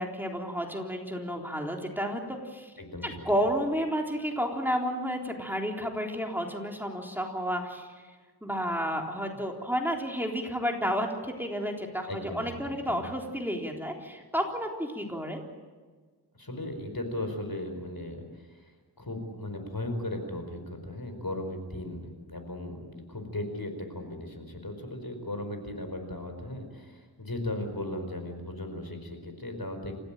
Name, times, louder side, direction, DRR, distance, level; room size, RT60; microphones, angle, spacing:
voice 1, 0.0-2.7 3.0-7.9 8.4-15.4, equal, 5° right, 1 dB, 3.7 m, -31 dB
voice 2, 2.8-3.2 12.1-12.5 12.9-13.0 16.3-30.0, left 1 dB, 60° left, 6 dB, 4.9 m, -37 dB
28.5 x 15.5 x 9.1 m, 1.5 s
wide cardioid pair, 45°, 40 cm